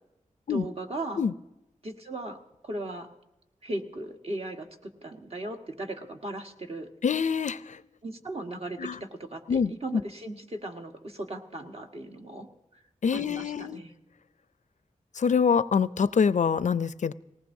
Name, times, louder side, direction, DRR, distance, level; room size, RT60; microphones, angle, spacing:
voice 1, 0.5-1.2 1.8-3.1 3.6-6.9 8.0-12.5 13.1-13.9, right 1 dB, 50° right, 3 dB, 1.5 m, -37 dB
voice 2, 7.0-7.8 8.8-9.0 9.5-9.7 13.0-13.8 15.2-17.1, left 6 dB, 65° left, 16 dB, 0.4 m, -25 dB
19.0 x 18.5 x 2.7 m, 0.93 s
wide cardioid pair, 75°, 13 cm